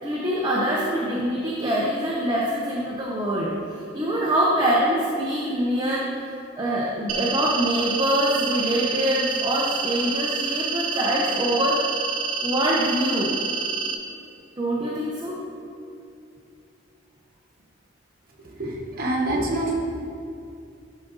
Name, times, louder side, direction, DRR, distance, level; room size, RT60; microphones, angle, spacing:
voice 1, 0.0-3.5 3.9-6.1 6.6-11.8 12.4-13.3 14.6-15.4, right 1 dB, 20° right, -5 dB, 0.7 m, -24 dB
sound 1, 7.1-13.9, right 4 dB, 90° right, 0.7 m, -28 dB
voice 2, 18.4-19.8, right 2 dB, 50° right, -1 dB, 1.2 m, -26 dB
10.5 x 4.1 x 4.0 m, 2.5 s
head